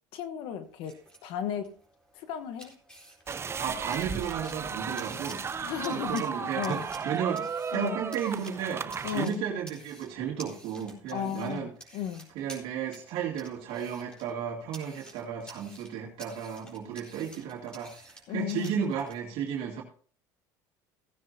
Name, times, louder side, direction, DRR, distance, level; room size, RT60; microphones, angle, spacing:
voice 1, 0.1-1.0 1.2-1.8 2.1-2.7 5.6-6.8 7.7-8.0 9.0-9.4 11.1-12.3 18.3-18.7, left 9 dB, 70° left, 1.2 m, -34 dB
sound 1, 0.6-19.2, right 1 dB, 10° left, 4.2 m, -52 dB
sound 2, 3.3-9.3, right 6 dB, 25° right, 0.7 m, -35 dB
voice 2, 3.6-5.4 5.9-11.7 12.3-19.8, right 8 dB, 65° right, 2.5 m, -34 dB
17.0 x 9.7 x 2.8 m
supercardioid pair, 100°, 10 cm